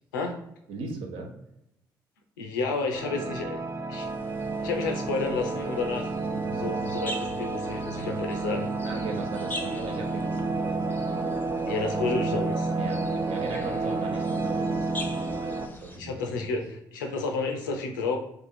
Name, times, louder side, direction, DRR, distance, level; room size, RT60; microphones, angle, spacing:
voice 1, 0.7-1.3 6.3-6.8 8.8-10.8 12.7-16.5, right 3 dB, 65° right, 1 dB, 0.7 m, -38 dB
voice 2, 2.4-3.6 3.9-4.1 4.6-8.7 9.5-9.8 11.7-12.7 16.0-18.2, left 4 dB, 85° left, 3 dB, 0.5 m, -31 dB
sound 1, 2.9-15.7, right 3 dB, 25° right, 0.4 m, -30 dB
sound 2, 4.0-16.0, left 1 dB, 20° left, 0.6 m, -44 dB
2.6 x 2.4 x 4.0 m, 0.80 s
hypercardioid pair, 45°, 10 cm